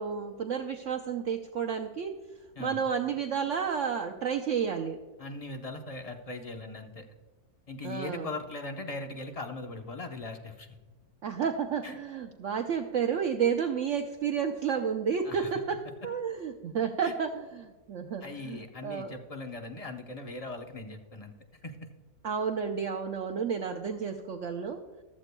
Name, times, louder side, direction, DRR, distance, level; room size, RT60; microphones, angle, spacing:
voice 1, 0.0-2.2 2.6-5.0 7.8-8.3 11.2-19.2 22.2-24.8, right 7 dB, 60° right, 4 dB, 0.9 m, -31 dB
voice 2, 5.2-7.1 7.7-10.7 11.8-11.9 15.2-15.5 17.0-17.1 18.2-21.3 21.6-21.8, left 2 dB, 30° left, 4 dB, 0.7 m, -39 dB
15.0 x 13.0 x 2.2 m, 1.3 s
omnidirectional pair, 1.7 m